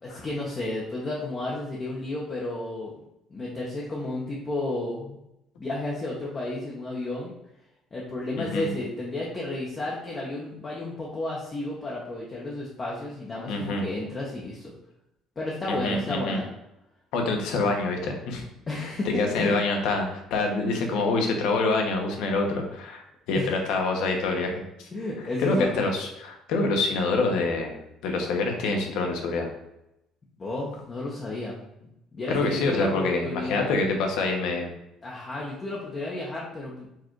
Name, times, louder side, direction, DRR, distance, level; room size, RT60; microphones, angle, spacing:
voice 1, 0.0-2.9 3.3-5.2 5.6-7.3 7.9-14.7 15.4-16.5 18.7-19.7 23.3-23.6 24.9-25.9 30.4-33.7 35.0-36.9, left 2 dB, 25° left, -4 dB, 0.7 m, -32 dB
voice 2, 8.4-8.7 13.5-13.8 15.7-16.4 17.1-18.4 18.8-24.9 25.4-27.7 28.0-29.5 32.3-34.7, left 3 dB, 75° left, 2 dB, 0.9 m, -26 dB
4.6 x 2.4 x 4.5 m, 0.86 s
cardioid pair, 160°, 0 cm